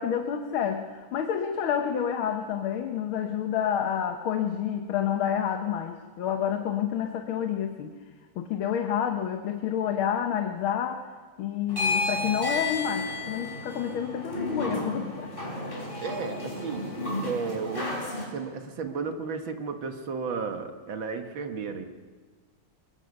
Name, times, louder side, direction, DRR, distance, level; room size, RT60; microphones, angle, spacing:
voice 1, 0.0-8.0 8.4-11.0 11.4-15.3 15.7-15.8, left 8 dB, 70° left, 5 dB, 1.8 m, -29 dB
sound 1, 11.7-18.2, left 2 dB, 25° left, 4.8 m, -32 dB
voice 2, 16.0-16.9 17.2-18.0 18.3-21.9, right 5 dB, 65° right, 6 dB, 2.1 m, -33 dB
23.0 x 22.0 x 5.4 m, 1.5 s
omnidirectional pair, 2.4 m